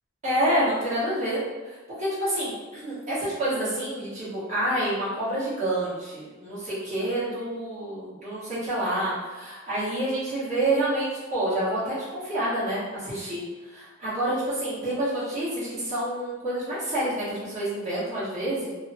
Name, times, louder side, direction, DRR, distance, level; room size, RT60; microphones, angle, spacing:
voice 1, 0.2-12.0 12.2-18.7, right 1 dB, 35° right, -11 dB, 1.5 m, -28 dB
3.1 x 2.1 x 2.8 m, 1.2 s
head